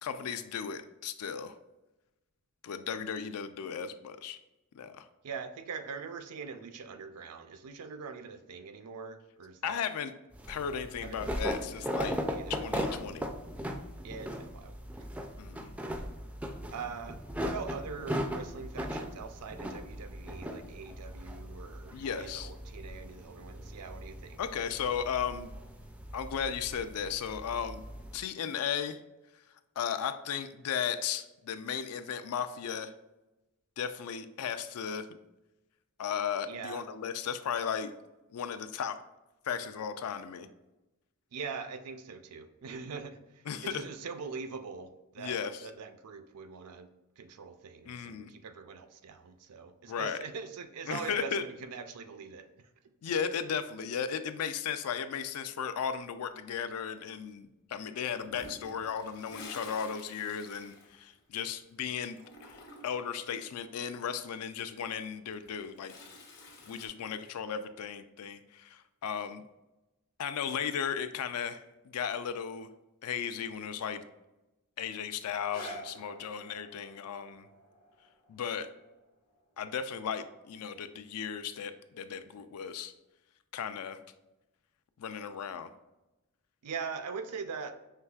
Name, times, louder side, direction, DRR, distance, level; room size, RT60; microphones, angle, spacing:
voice 1, 0.0-1.5 2.6-4.4 4.7-5.1 9.6-10.1 10.5-12.2 12.5-13.3 15.4-15.7 21.9-22.5 24.4-25.5 26.1-27.8 28.1-29.0 29.8-32.9 33.8-35.1 36.0-37.9 38.3-38.9 39.4-40.5 43.5-43.8 45.2-45.7 47.9-48.3 49.9-50.2 50.9-51.4 53.0-62.2 62.5-65.9 66.7-69.4 70.2-72.7 73.0-74.0 74.8-77.5 78.3-78.7 79.6-82.9 83.5-84.0 85.0-85.7, left 7 dB, 70° left, 10 dB, 0.4 m, -35 dB
voice 2, 5.2-9.8 11.0-11.9 12.2-12.6 14.0-15.1 16.7-24.4 36.5-36.9 41.3-45.4 45.6-46.9 47.2-52.7 86.6-87.7, right 5 dB, 85° right, 9 dB, 0.5 m, -42 dB
sound 1, 10.3-28.2, equal, 5° right, 0.3 m, -39 dB
Toilet flush, 58.2-61.7 61.9-63.1 65.1-66.9, left 2 dB, 50° left, 1.0 m, -50 dB
sound 2, 75.5-81.3 82.0-82.1, equal, 90° left, 1.1 m, -51 dB
5.7 x 3.2 x 2.3 m, 1.0 s
head